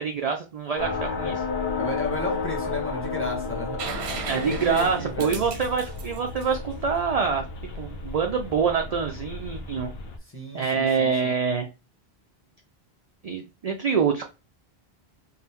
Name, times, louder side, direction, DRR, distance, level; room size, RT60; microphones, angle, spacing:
voice 1, 0.0-1.4 4.3-7.4 7.8-9.9 10.5-11.7 13.2-14.3, right 6 dB, 50° right, 4 dB, 0.5 m, -25 dB
sound 1, 0.8-10.2, left 4 dB, 70° left, 1.0 m, -33 dB
voice 2, 0.8-1.3 1.8-5.5 10.2-11.3, left 1 dB, 10° left, -1 dB, 1.1 m, -34 dB
sound 2, 3.8-7.5 9.4-9.5, right 5 dB, 85° right, 1.0 m, -36 dB
4.5 x 2.2 x 3.5 m, 0.29 s
omnidirectional pair, 1.1 m